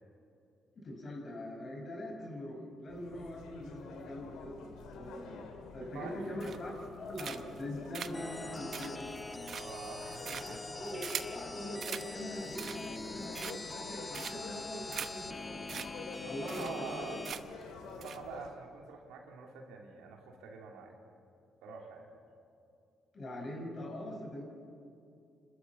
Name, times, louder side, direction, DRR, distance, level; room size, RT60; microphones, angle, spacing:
voice 1, 0.8-9.1 10.7-15.8 16.3-17.0 23.1-24.4, left 1 dB, 50° left, 2 dB, 5.4 m, -42 dB
sound 1, 2.9-18.5, left 4 dB, 80° left, 2.2 m, -49 dB
voice 2, 5.8-6.3 9.6-11.1 16.2-17.2 17.8-21.0 21.6-22.1, right 5 dB, 85° right, 1 dB, 2.8 m, -46 dB
sound 2, 6.4-6.8 7.2-7.6 7.9-11.4 11.8-12.1 12.4-13.0 13.3-13.8 14.1-14.6 14.9-15.1 15.4-15.5 15.7-15.9 16.1-16.2 16.5-17.0 17.2-17.6 18.0-18.2, right 7 dB, 60° right, 0.9 m, -42 dB
sound 3, 8.1-17.3, left 2 dB, 25° left, 1.1 m, -44 dB
27.0 x 13.0 x 8.4 m, 2.6 s
supercardioid pair, 60°, 0 cm